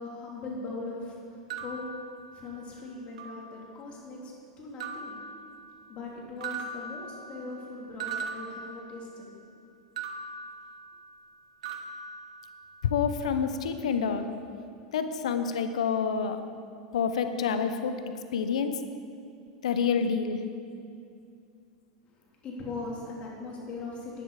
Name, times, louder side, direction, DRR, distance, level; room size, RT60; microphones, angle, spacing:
voice 1, 0.0-1.9 2.3-5.2 5.9-9.3 22.1-24.2, left 3 dB, 35° left, -3 dB, 3.4 m, -40 dB
sound 1, 1.5-2.8 3.2-3.9 4.8-6.1 6.4-9.4 10.0-11.3 11.6-13.0, right 4 dB, 80° right, 1.1 m, -41 dB
voice 2, 12.8-14.3 14.9-16.4 16.9-18.8 19.6-20.4, left 6 dB, 80° left, 9 dB, 0.9 m, -28 dB
11.0 x 10.0 x 5.0 m, 2.5 s
hypercardioid pair, 105°, 3 cm